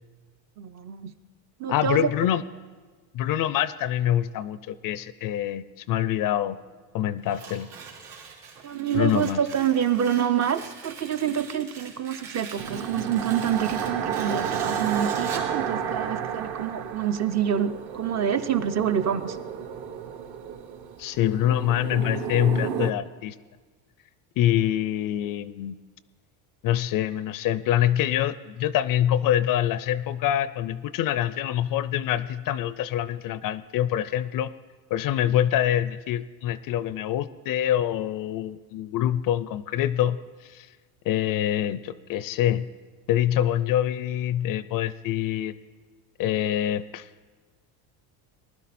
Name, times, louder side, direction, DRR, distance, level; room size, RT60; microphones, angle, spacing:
voice 1, 0.6-1.1 1.6-2.1 8.6-19.4, right 9 dB, 35° right, 10 dB, 0.5 m, -27 dB
voice 2, 1.7-2.4 3.1-6.6 6.9-7.7 8.9-9.4 21.0-23.3 24.4-25.8 26.6-34.5 34.9-40.2 40.4-40.7 41.1-42.7 43.1-45.5 46.2-47.1, left 11 dB, 45° left, 16 dB, 0.4 m, -25 dB
Tearing, 7.2-15.6, right 5 dB, 85° right, 3.1 m, -43 dB
sound 1, 12.6-22.9, right 7 dB, 50° right, 1.1 m, -32 dB
19.5 x 12.0 x 4.2 m, 1.4 s
cardioid pair, 125°, 49 cm